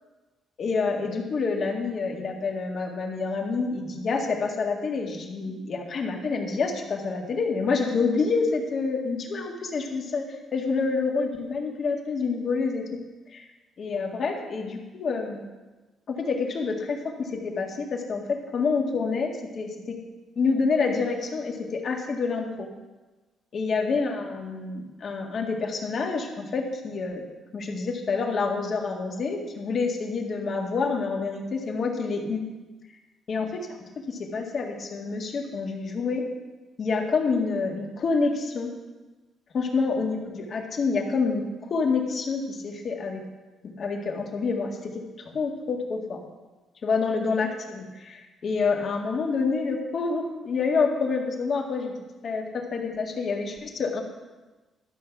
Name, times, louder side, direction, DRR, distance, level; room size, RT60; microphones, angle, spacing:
voice 1, 0.6-10.3 10.5-12.9 13.3-13.4 13.8-15.4 16.1-20.0 20.4-22.7 23.5-27.2 27.5-32.4 33.3-33.6 34.1-36.2 36.8-38.7 39.5-43.2 43.8-44.9 45.3-46.2 46.8-51.9 52.2-54.0, left 4 dB, 55° left, 1 dB, 1.9 m, -27 dB
12.5 x 6.4 x 6.0 m, 1.2 s
cardioid pair, 90°, 0 cm